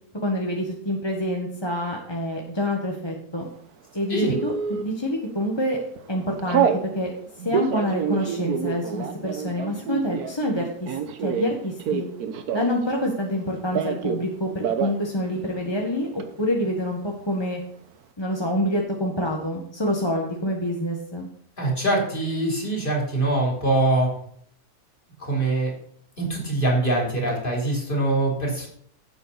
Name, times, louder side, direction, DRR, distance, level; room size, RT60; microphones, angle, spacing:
voice 1, 0.2-3.4 3.9-5.8 6.1-7.1 7.4-10.9 11.2-12.0 12.5-17.6 18.2-21.3, left 1 dB, 20° left, 0 dB, 1.4 m, -27 dB
Telephone, 4.3-4.8 5.4-5.7 6.0-6.8 7.4-12.9 13.2-14.3 14.5-15.0 15.3-15.4 15.7-16.2, right 7 dB, 80° right, 1.5 m, -27 dB
voice 2, 21.6-24.1 25.2-25.7 26.2-28.7, right 2 dB, 35° left, -1 dB, 3.6 m, -23 dB
15.5 x 7.9 x 4.1 m, 0.63 s
omnidirectional pair, 1.6 m